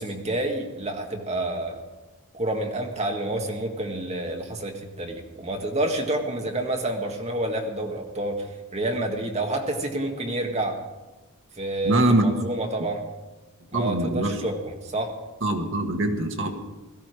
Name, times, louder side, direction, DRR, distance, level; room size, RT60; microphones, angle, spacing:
voice 1, 0.0-1.8 2.3-8.5 8.7-10.8 11.6-13.0 13.7-15.1, right 1 dB, 30° right, 2 dB, 1.7 m, -28 dB
voice 2, 11.8-12.3 13.7-14.4 15.4-16.5, right 1 dB, 60° right, 4 dB, 1.7 m, -23 dB
17.0 x 13.5 x 4.8 m, 1.2 s
head